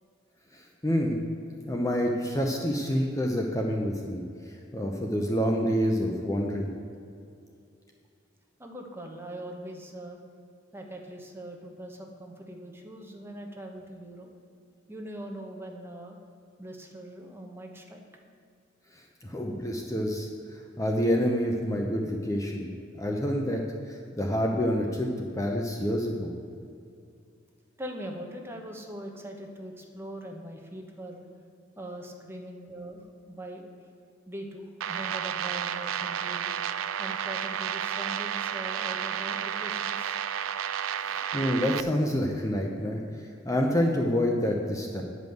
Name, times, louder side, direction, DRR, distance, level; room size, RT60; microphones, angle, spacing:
voice 1, 0.5-1.2 1.7-4.2 4.7-6.7 19.2-25.1 25.4-26.3 41.0-45.0, equal, 15° left, 1 dB, 0.7 m, -28 dB
voice 2, 8.6-10.2 10.7-14.3 14.9-16.2 16.6-18.0 27.8-31.3 31.8-33.9 34.3-36.5 37.0-40.2, right 1 dB, 10° right, 2 dB, 1.1 m, -41 dB
sound 1, 34.8-41.8, right 9 dB, 80° right, 0.4 m, -31 dB
9.5 x 5.3 x 7.8 m, 2.5 s
head